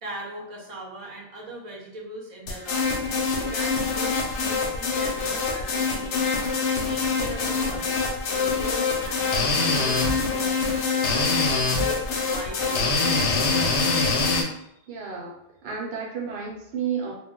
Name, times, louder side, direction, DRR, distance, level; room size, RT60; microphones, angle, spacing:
voice 1, 0.0-3.1 3.4-6.3 6.6-8.0 8.2-10.6 10.9-13.3 14.5-15.1, right 1 dB, 35° right, -3 dB, 0.7 m, -40 dB
sound 1, 2.5-14.4, left 4 dB, 85° left, 0.9 m, -24 dB
voice 2, 14.9-15.3 15.6-17.1, right 6 dB, 70° right, -2 dB, 0.9 m, -31 dB
2.3 x 2.1 x 3.7 m, 0.77 s
omnidirectional pair, 1.1 m